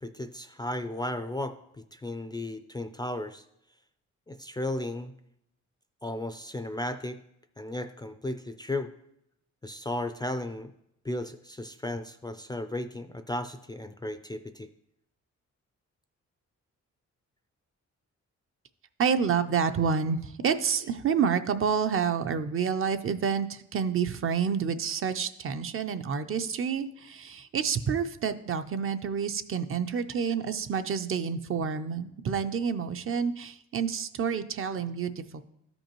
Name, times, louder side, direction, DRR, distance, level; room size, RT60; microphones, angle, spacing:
voice 1, 0.0-1.6 1.9-3.4 4.3-5.1 6.0-7.2 7.6-8.9 9.6-10.7 11.0-14.7, left 1 dB, 15° left, 9 dB, 0.3 m, -35 dB
voice 2, 19.0-35.4, right 6 dB, 45° right, 10 dB, 0.5 m, -28 dB
13.0 x 5.3 x 3.0 m, 0.79 s
cardioid pair, 115°, 29 cm